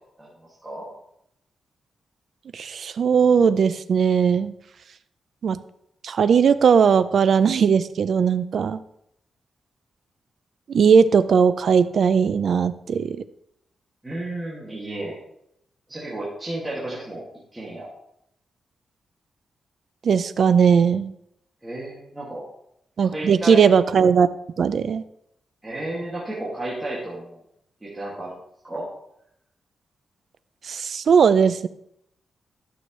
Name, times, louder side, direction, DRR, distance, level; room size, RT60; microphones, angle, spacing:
voice 1, 0.2-0.9 14.0-15.2 15.9-17.2 17.5-17.9 21.6-22.4 23.0-23.7 25.6-27.4 27.8-28.4 28.6-28.9, right 1 dB, 10° right, -7 dB, 2.1 m, -32 dB
voice 2, 2.5-4.5 5.4-5.6 6.0-8.8 10.7-13.2 20.0-21.1 23.0-24.3 24.6-25.0 30.6-31.7, right 6 dB, 60° right, 13 dB, 0.4 m, -18 dB
11.5 x 6.3 x 3.1 m, 0.75 s
wide cardioid pair, 140°, 0 cm